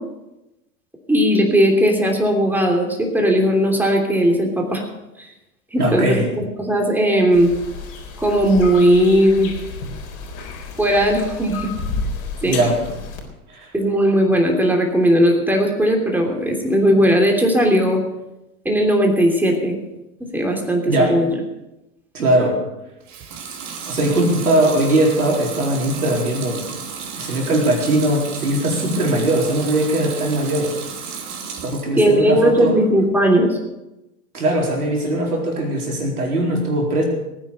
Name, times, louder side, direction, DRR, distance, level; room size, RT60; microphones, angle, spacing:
voice 1, 1.1-4.8 5.2-5.3 5.7-7.5 8.2-9.5 10.8-11.7 12.4-12.6 13.7-18.0 18.6-19.8 20.3-21.3 31.9-33.6, equal, 5° right, 1 dB, 3.1 m, -17 dB
voice 2, 5.8-6.3 12.4-12.8 13.5-13.7 20.9-21.2 22.1-22.6 23.8-26.7 27.1-30.7 31.6-32.8 34.3-37.0, right 1 dB, 80° right, -1 dB, 4.5 m, -20 dB
sound 1, 7.3-13.2, left 4 dB, 60° left, 4.2 m, -31 dB
Water tap faucet / Sink (filling or washing) / Liquid, 23.0-31.9 32.3-33.1, right 6 dB, 40° right, 2.9 m, -33 dB
18.5 x 9.4 x 6.6 m, 0.96 s
hypercardioid pair, 95°, 44 cm